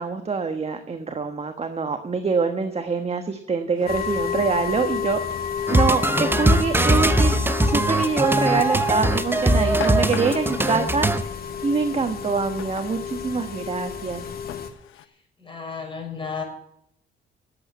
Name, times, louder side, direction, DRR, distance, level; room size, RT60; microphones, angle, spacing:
voice 1, 0.0-5.2 5.7-7.3 7.7-11.3 11.6-14.2, right 4 dB, 30° right, 7 dB, 1.3 m, -25 dB
Drawer open or close, 2.4-2.5 3.7-4.6 5.3-6.1 7.9-8.4 9.3-10.7 12.6-13.0 13.7-13.8 14.5-15.0, left 12 dB, 80° left, 0.9 m, -38 dB
sound 1, 3.9-14.7, left 7 dB, 50° left, 2.1 m, -31 dB
sound 2, 5.7-11.2, right 1 dB, 10° right, 0.9 m, -21 dB
voice 2, 15.4-16.4, left 5 dB, 25° left, 1 dB, 5.3 m, -33 dB
11.5 x 8.1 x 8.6 m, 0.74 s
cardioid pair, 90°, 20 cm